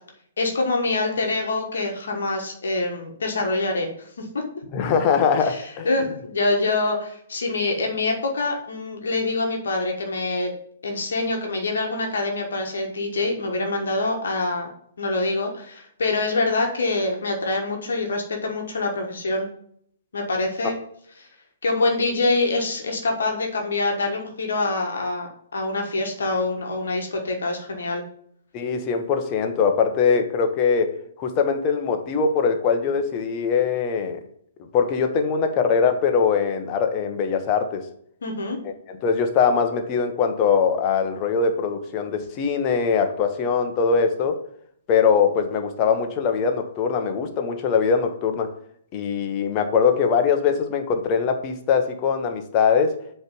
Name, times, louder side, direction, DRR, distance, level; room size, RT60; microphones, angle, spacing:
voice 1, 0.4-3.9 4.2-4.4 5.4-10.5 10.8-14.7 15.0-19.5 20.1-20.7 21.2-21.3 21.6-28.0 38.2-38.6, left 2 dB, 60° left, 2 dB, 1.3 m, -25 dB
voice 2, 4.7-5.9 28.5-34.2 34.7-37.8 38.6-44.4 44.9-48.5 48.9-52.9, left 6 dB, 30° left, 5 dB, 1.0 m, -22 dB
7.9 x 3.3 x 5.3 m, 0.66 s
figure-of-eight pair, 120°, 0 cm